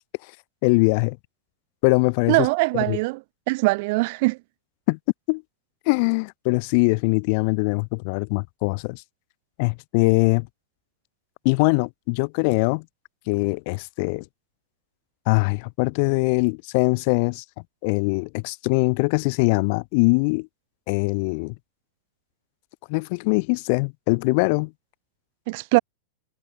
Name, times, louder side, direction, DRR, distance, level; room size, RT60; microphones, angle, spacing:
voice 1, 0.6-1.2 1.8-2.5 2.7-3.0 4.9-5.0 5.3-5.4 5.9-9.0 9.6-10.5 11.4-12.8 13.3-14.2 15.3-17.4 17.8-20.5 20.9-21.5 22.9-24.7, left 31 dB, 45° left, 1.5 m, -22 dB
voice 2, 2.3-3.2 3.5-4.4 25.5-25.8, right 25 dB, 50° right, 0.9 m, -21 dB
figure-of-eight pair, 90°, 0 cm